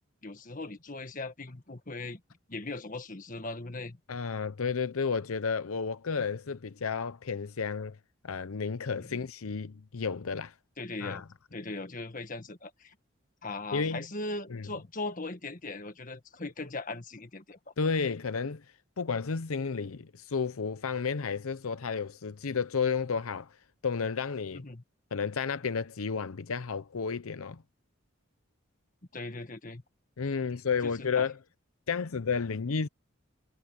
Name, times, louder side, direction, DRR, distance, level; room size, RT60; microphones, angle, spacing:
voice 1, 0.2-2.2 2.5-4.0 9.0-9.2 10.8-11.2 11.5-13.0 13.4-17.7 24.5-24.8 29.1-29.8 30.8-31.3, left 2 dB, 40° left, 1.7 m, -39 dB
voice 2, 4.1-8.0 8.2-10.5 11.0-11.2 13.7-14.0 14.5-14.6 17.8-18.6 19.0-23.5 23.8-24.6 25.1-27.6 30.2-31.3 31.9-32.9, left 5 dB, 85° left, 0.7 m, -32 dB
head